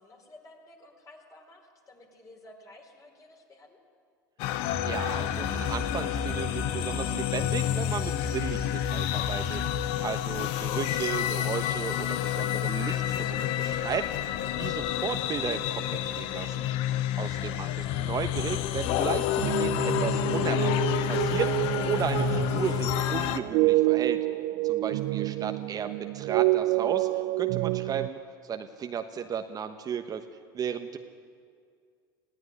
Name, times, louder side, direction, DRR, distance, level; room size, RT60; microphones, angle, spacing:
voice 1, 0.0-3.8 17.4-17.7 24.8-25.3, left 1 dB, 30° left, 2 dB, 4.6 m, -53 dB
sound 1, 4.4-23.4, left 12 dB, 60° left, 1.1 m, -29 dB
sound 2, 4.7-9.9, left 1 dB, 10° left, 0.9 m, -36 dB
voice 2, 4.8-9.6 10.0-14.0 14.6-16.7 17.2-20.7 21.1-24.2 24.6-27.1 27.4-28.2 28.5-30.2 30.5-31.0, right 7 dB, 35° right, 7 dB, 1.2 m, -34 dB
sound 3, 19.4-28.1, right 20 dB, 60° right, 0.5 m, -28 dB
20.0 x 16.0 x 9.9 m, 2.1 s
hypercardioid pair, 90°, 11 cm